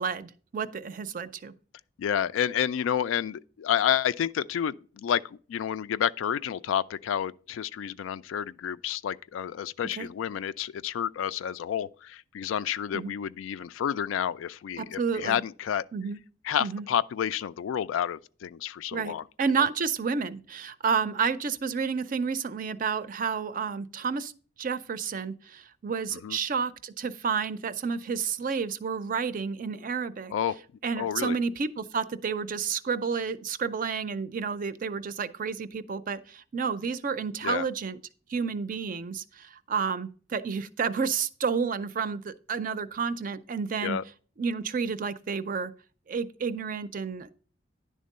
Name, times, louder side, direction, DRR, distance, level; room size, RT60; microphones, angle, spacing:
voice 1, 0.0-1.5 10.0-10.1 12.9-13.1 14.8-15.4 15.9-16.2 16.6-16.9 18.9-24.3 24.6-30.3 30.8-38.0 38.3-44.0 44.4-45.7 46.1-47.3, right 5 dB, 45° right, 0.4 m, -30 dB
voice 2, 2.0-15.8 16.4-19.2 19.6-19.7 26.2-26.4 30.3-30.6 31.0-31.4 37.4-37.7 43.8-44.0, left 9 dB, 85° left, 0.3 m, -30 dB
10.5 x 3.7 x 5.3 m
head